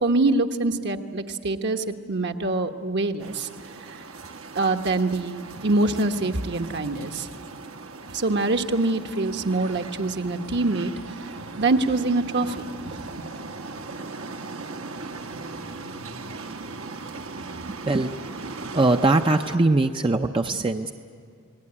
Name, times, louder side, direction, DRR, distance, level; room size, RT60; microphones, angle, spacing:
voice 1, 0.0-3.5 3.9-4.0 4.5-7.3 8.1-12.7, right 2 dB, 55° right, 6 dB, 1.2 m, -25 dB
sound 1, 3.2-19.6, right 3 dB, 70° right, 1.4 m, -38 dB
voice 2, 18.7-20.9, right 2 dB, 25° right, 6 dB, 0.6 m, -21 dB
30.0 x 19.0 x 9.8 m, 2.2 s
head